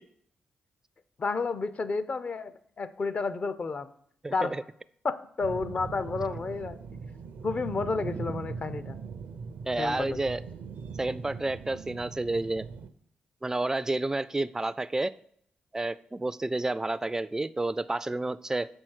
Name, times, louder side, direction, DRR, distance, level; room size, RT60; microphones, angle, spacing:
voice 1, 1.2-2.5 2.8-3.9 4.3-4.5 5.0-6.8 7.4-9.0 9.8-10.2, left 4 dB, 50° left, 13 dB, 0.6 m, -31 dB
voice 2, 4.2-4.6 9.7-10.4 11.0-12.7 13.4-15.1 15.7-18.7, right 2 dB, 15° right, 15 dB, 0.3 m, -30 dB
sound 1, 5.4-12.9, right 5 dB, 75° right, 0.5 m, -40 dB
5.7 x 4.4 x 6.4 m, 0.65 s
supercardioid pair, 50°, 3 cm